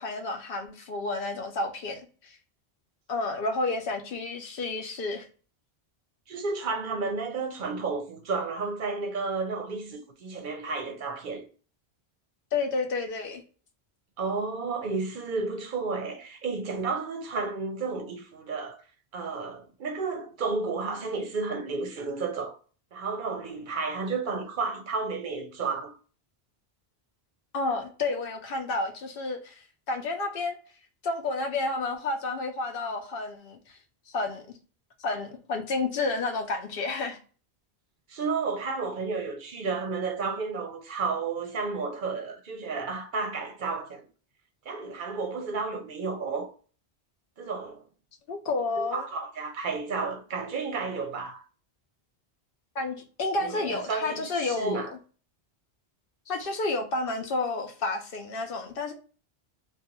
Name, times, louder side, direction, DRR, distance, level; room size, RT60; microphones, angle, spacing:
voice 1, 0.0-2.4 3.1-5.3 12.5-13.4 27.5-30.6 31.0-33.8 34.1-34.4 35.0-37.2 48.3-49.0 52.7-54.8 56.3-58.9, left 3 dB, 65° left, 0.8 m, -30 dB
voice 2, 6.3-11.5 14.2-18.8 19.1-22.6 22.9-26.0 38.1-44.1 44.7-46.5 47.4-47.8 48.9-51.4 53.4-54.9, right 4 dB, 60° right, 0.6 m, -32 dB
2.4 x 2.2 x 2.8 m
omnidirectional pair, 1.1 m